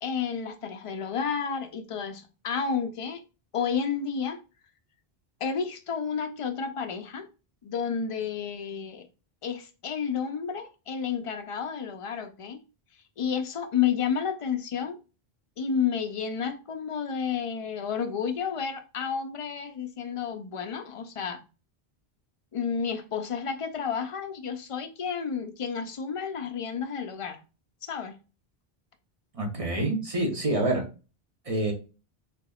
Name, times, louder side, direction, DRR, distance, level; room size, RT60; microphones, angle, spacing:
voice 1, 0.0-3.2 3.5-4.4 5.4-7.3 7.6-9.0 9.4-12.6 13.2-15.0 15.6-21.4 22.5-27.4 27.8-28.2, left 7 dB, 45° left, 0.4 m, -31 dB
voice 2, 29.3-30.8 31.4-31.7, right 2 dB, 35° right, 0.9 m, -27 dB
3.5 x 2.8 x 2.3 m
omnidirectional pair, 1.1 m